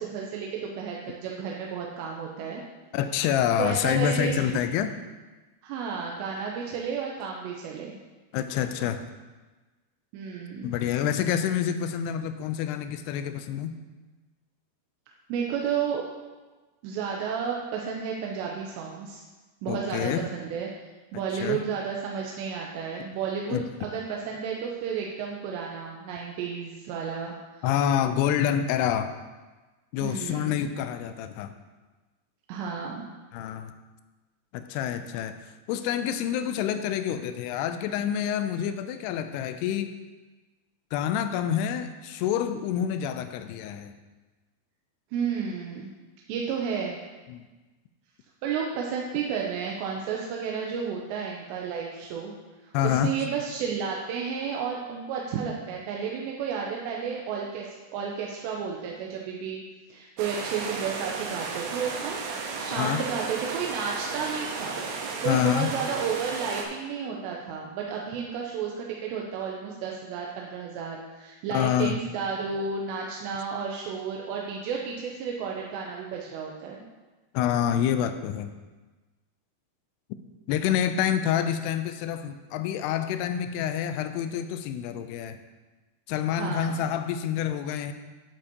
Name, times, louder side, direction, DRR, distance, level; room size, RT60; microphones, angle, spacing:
voice 1, 0.0-2.6 3.6-4.6 5.6-8.0 10.1-10.7 15.3-16.0 16.8-19.2 19.6-20.7 21.1-27.6 30.0-30.7 32.5-33.1 45.1-45.9 46.3-47.0 48.4-52.3 52.8-57.7 57.9-59.6 59.9-62.2 62.6-76.8 86.3-86.8, right 6 dB, 90° right, -1 dB, 2.9 m, -32 dB
voice 2, 2.9-4.9 8.3-9.0 10.6-13.8 19.7-20.3 21.4-21.6 23.5-23.6 27.6-29.1 29.9-31.5 33.3-33.7 34.5-35.3 35.7-39.9 40.9-43.9 47.3-47.5 52.7-53.1 62.8-63.0 65.3-65.7 71.5-72.0 77.3-78.5 80.5-85.4 86.1-87.9, left 9 dB, 80° left, 9 dB, 2.5 m, -27 dB
sound 1, 60.2-66.6, right 4 dB, 75° right, 2.8 m, -34 dB
11.0 x 8.0 x 2.9 m, 1.2 s
omnidirectional pair, 5.0 m